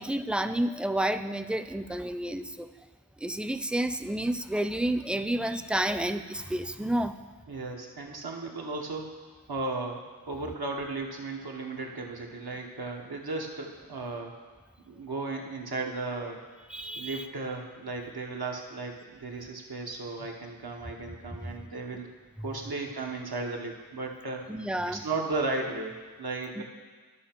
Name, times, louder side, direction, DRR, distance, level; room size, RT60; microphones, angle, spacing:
voice 1, 0.0-2.7 3.2-7.1 16.7-17.3 21.4-21.5 22.4-22.5 24.5-25.0 26.6-26.7, right 1 dB, 5° right, 11 dB, 0.4 m, -30 dB
voice 2, 7.5-9.1 9.5-14.3 14.9-16.4 17.0-22.1 22.4-24.4 25.0-26.6, right 3 dB, 90° right, 1 dB, 1.1 m, -35 dB
12.5 x 5.7 x 4.4 m, 1.5 s
wide cardioid pair, 40°, 36 cm